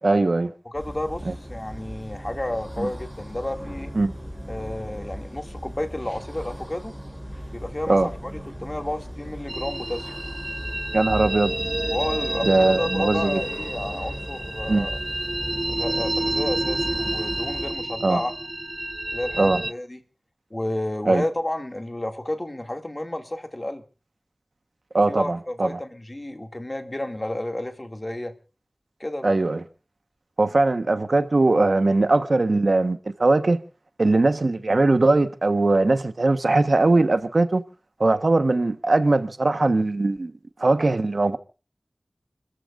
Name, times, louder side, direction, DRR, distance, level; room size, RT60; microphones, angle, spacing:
voice 1, 0.0-0.5 1.2-1.3 2.8-2.9 3.9-4.1 7.9-8.1 10.9-11.5 12.4-13.4 14.7-14.9 18.0-18.2 19.4-19.6 21.1-21.2 24.9-25.7 29.2-29.6 30.4-33.6 34.0-37.6 38.0-40.3 40.6-41.4, right 2 dB, 75° right, 1.3 m, -20 dB
voice 2, 0.6-3.9 4.5-6.9 7.5-8.3 8.6-10.1 11.9-15.0 15.7-18.3 19.1-20.0 20.5-23.8 25.1-28.3 29.0-29.4, left 1 dB, 35° left, 2.5 m, -31 dB
sound 1, 0.7-17.7, equal, 5° left, 7.9 m, -37 dB
sound 2, 9.5-19.7, right 1 dB, 40° right, 0.7 m, -29 dB
30.0 x 14.0 x 2.6 m
wide cardioid pair, 50°, 0 cm